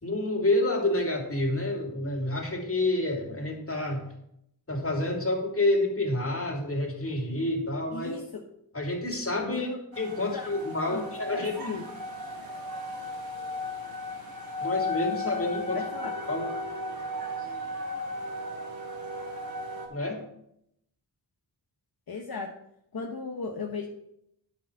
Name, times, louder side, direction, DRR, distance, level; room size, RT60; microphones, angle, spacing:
voice 1, 0.0-4.0 4.7-8.2 8.7-9.7 10.0-11.8 14.6-15.8 16.3-16.5 19.9-20.2, left 2 dB, 35° left, 1 dB, 2.6 m, -28 dB
voice 2, 7.9-8.4 9.5-9.8 10.3-10.5 10.9-11.0 11.3-11.8 15.7-16.1 22.1-22.5 22.9-23.9, left 4 dB, 60° left, 2 dB, 1.0 m, -36 dB
sound 1, 9.9-19.9, left 2 dB, 60° right, 2.7 m, -35 dB
9.8 x 4.5 x 7.1 m, 0.76 s
cardioid pair, 55°, 40 cm